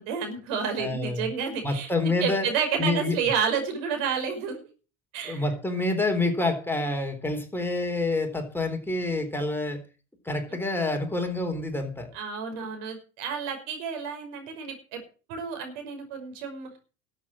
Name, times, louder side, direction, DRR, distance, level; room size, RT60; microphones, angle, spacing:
voice 1, 0.0-4.6 5.1-5.5 12.1-15.0 15.3-16.7, right 6 dB, 70° right, 5 dB, 5.5 m, -30 dB
voice 2, 0.8-1.3 1.6-2.5 2.8-3.2 5.2-9.8 10.3-12.1, left 2 dB, 5° left, 3 dB, 3.9 m, -27 dB
13.0 x 8.5 x 7.5 m, 0.36 s
hypercardioid pair, 85°, 39 cm